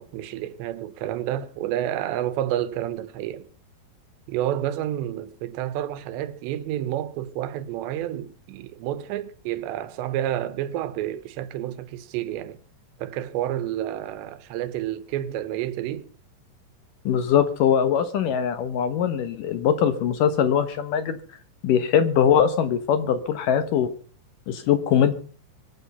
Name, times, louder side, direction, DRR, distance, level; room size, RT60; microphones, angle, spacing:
voice 1, 0.0-3.5 4.3-12.6 13.0-16.1, right 12 dB, 80° right, 3.0 m, -29 dB
voice 2, 17.1-21.2 21.6-23.9 24.5-25.1, left 8 dB, 75° left, 2.0 m, -21 dB
24.5 x 8.9 x 5.5 m
omnidirectional pair, 5.1 m